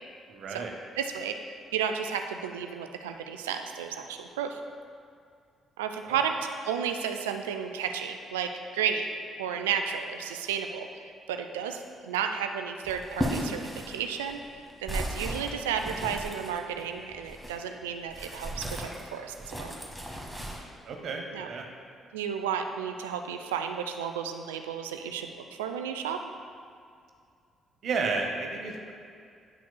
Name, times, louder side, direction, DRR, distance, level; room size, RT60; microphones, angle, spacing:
voice 1, 0.3-0.7 6.0-6.2 20.9-21.7 27.8-28.9, right 4 dB, 55° right, 2 dB, 0.7 m, -32 dB
voice 2, 1.0-4.6 5.8-9.1 9.4-10.9 11.3-14.4 14.8-19.7 21.3-21.5 22.1-26.2, right 7 dB, 75° right, 6 dB, 0.3 m, -32 dB
sound 1, 12.8-17.6 18.1-20.6, equal, ahead, 1.2 m, -36 dB
9.4 x 5.8 x 2.2 m, 2.3 s
figure-of-eight pair, 45°, 0 cm